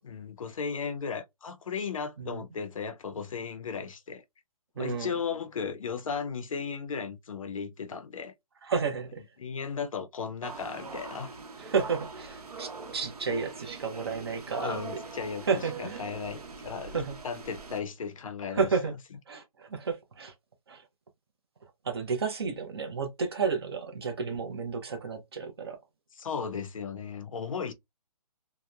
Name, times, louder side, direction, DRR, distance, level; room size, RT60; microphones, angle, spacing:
voice 1, 0.0-4.2 4.8-8.3 9.4-11.4 14.6-18.7 26.2-27.7, left 6 dB, 60° left, 0.5 m, -36 dB
voice 2, 4.8-5.1 8.6-9.2 11.6-15.0 15.4-16.0 16.9-17.2 18.5-18.9 19.3-20.3 20.7-20.8 21.8-25.8, right 5 dB, 40° right, 0.6 m, -31 dB
sound 1, 10.4-17.8, right 4 dB, 75° right, 0.9 m, -42 dB
2.8 x 2.1 x 2.3 m
hypercardioid pair, 170°, 20 cm